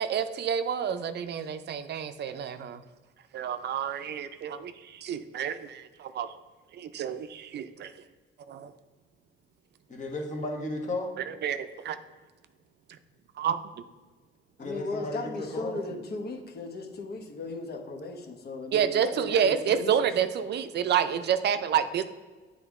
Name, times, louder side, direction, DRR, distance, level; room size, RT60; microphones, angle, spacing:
voice 1, 0.0-2.8 3.3-6.3 6.7-7.9 8.5-8.7 11.2-12.0 13.4-13.6 18.7-22.0, right 8 dB, 60° right, 11 dB, 0.4 m, -29 dB
voice 2, 9.9-11.1 14.6-15.7, left 2 dB, 40° left, 1 dB, 1.4 m, -34 dB
voice 3, 14.6-20.0, left 3 dB, 55° left, 4 dB, 1.0 m, -37 dB
8.0 x 3.8 x 3.6 m, 1.3 s
cardioid pair, 90°, 20 cm